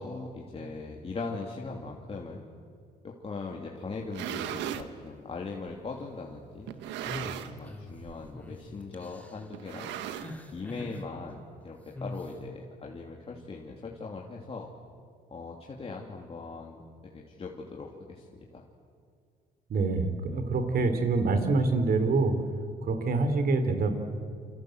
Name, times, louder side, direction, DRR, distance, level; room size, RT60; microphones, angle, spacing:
voice 1, 0.0-2.5 3.0-9.9 10.5-14.7 15.3-18.6, left 3 dB, 30° left, -1 dB, 2.7 m, -40 dB
sound 1, 3.9-4.9 5.7-5.8 6.7-7.7 8.0-8.3 8.5-8.6 9.5-10.6, right 10 dB, 90° right, 1.4 m, -37 dB
sound 2, 7.0-7.9 8.3-8.6 8.9-9.4 10.1-11.0 11.9-12.3, left 2 dB, 10° left, 2.7 m, -41 dB
voice 2, 19.7-22.3 22.8-23.9, right 3 dB, 55° right, 8 dB, 3.7 m, -26 dB
28.5 x 26.0 x 8.0 m, 2.2 s
cardioid pair, 100°, 18 cm